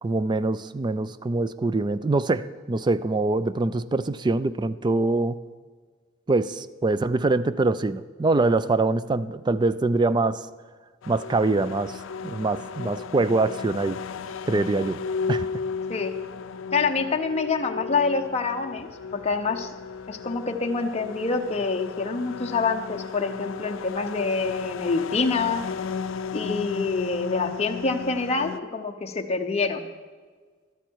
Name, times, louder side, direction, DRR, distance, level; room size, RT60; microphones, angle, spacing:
voice 1, 0.0-5.4 6.3-10.4 11.1-12.0 12.2-14.0 14.5-15.0 15.3-15.5, right 3 dB, 20° right, 15 dB, 0.4 m, -24 dB
sound 1, 11.0-28.6, left 5 dB, 80° left, 0.4 m, -35 dB
voice 2, 16.7-19.7 20.1-25.6 26.3-29.9, left 4 dB, 35° left, 4 dB, 0.7 m, -26 dB
13.0 x 13.0 x 4.6 m, 1.5 s
head